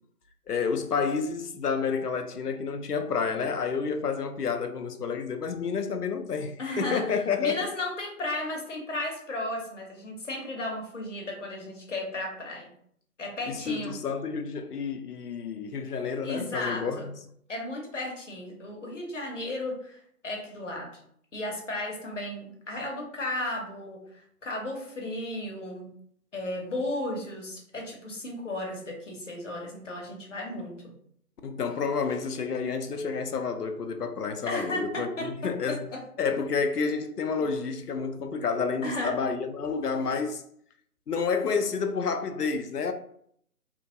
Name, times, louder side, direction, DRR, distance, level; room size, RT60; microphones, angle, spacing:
voice 1, 0.5-7.7 13.5-17.1 31.4-35.8 36.2-40.4 41.1-42.9, left 5 dB, 85° left, 0.6 m, -29 dB
voice 2, 6.6-7.1 7.4-12.7 13.2-13.9 16.2-17.1 17.5-20.9 21.3-24.0 24.4-25.9 26.3-30.9 34.5-36.0 38.8-39.2, left 1 dB, 55° left, 0.9 m, -34 dB
2.8 x 2.7 x 2.6 m
figure-of-eight pair, 150°, 45 cm